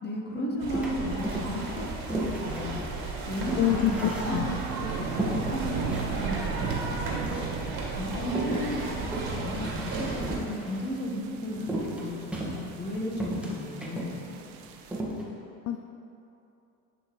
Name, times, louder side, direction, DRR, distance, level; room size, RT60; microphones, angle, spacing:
voice 1, 0.0-7.3 7.9-14.4, left 1 dB, 25° left, -1 dB, 1.4 m, -34 dB
sound 1, 0.6-10.3, right 3 dB, 50° right, 1.7 m, -34 dB
sound 2, 0.7-1.7 2.1-4.7 5.2-6.1 6.4-6.5 6.7-7.6 8.3-10.9 11.7-12.9 13.2-14.1 14.5-14.6 14.9-15.2, right 1 dB, 5° right, 1.5 m, -34 dB
sound 3, 1.2-15.0, right 7 dB, 70° right, 0.7 m, -40 dB
voice 2, 3.6-4.5 15.7-15.8, left 13 dB, 45° left, 5 dB, 0.4 m, -26 dB
10.5 x 5.3 x 3.2 m, 2.8 s
hypercardioid pair, 70°, 42 cm